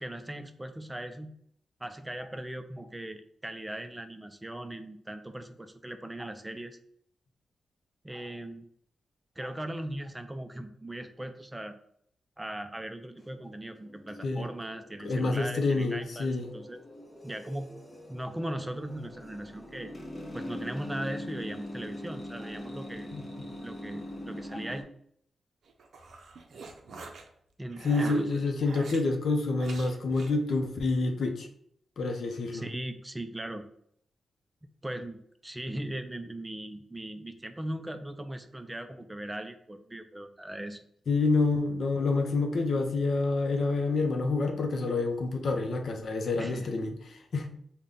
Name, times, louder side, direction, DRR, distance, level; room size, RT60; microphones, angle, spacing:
voice 1, 0.0-1.3 1.8-6.8 8.0-8.7 9.4-11.8 12.4-16.8 17.2-17.7 18.1-19.9 20.3-23.1 23.6-24.9 27.6-28.4 32.5-33.7 34.8-40.8 46.4-46.8, right 1 dB, 15° right, 8 dB, 0.3 m, -39 dB
sound 1, 13.2-24.8, left 1 dB, 25° left, 0.7 m, -42 dB
voice 2, 15.0-16.5 23.1-23.2 27.8-31.5 32.0-32.6 41.1-47.5, left 3 dB, 65° left, 5 dB, 0.5 m, -28 dB
sound 2, 25.7-27.3 27.7-29.0 29.6-30.4, right 3 dB, 75° right, 0.5 m, -44 dB
3.8 x 2.1 x 3.5 m, 0.66 s
cardioid pair, 95°, 0 cm